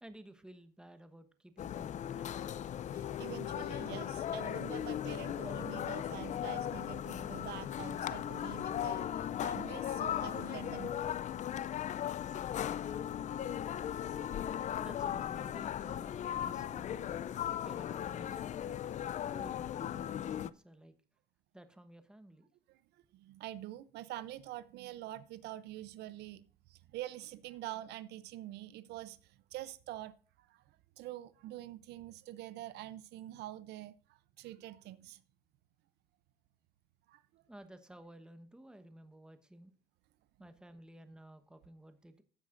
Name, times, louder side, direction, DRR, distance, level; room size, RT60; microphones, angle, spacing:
voice 1, 0.0-2.4 14.8-17.1 17.6-18.5 19.2-20.9 21.5-22.5 37.5-39.7 40.4-42.2, right 1 dB, 5° right, 1.1 m, -54 dB
sound 1, 1.6-20.5, left 10 dB, 45° left, 0.5 m, -37 dB
voice 2, 2.9-11.0 22.7-35.2 37.1-37.4, right 14 dB, 80° right, 0.6 m, -46 dB
15.0 x 8.2 x 2.5 m
cardioid pair, 110°, 17 cm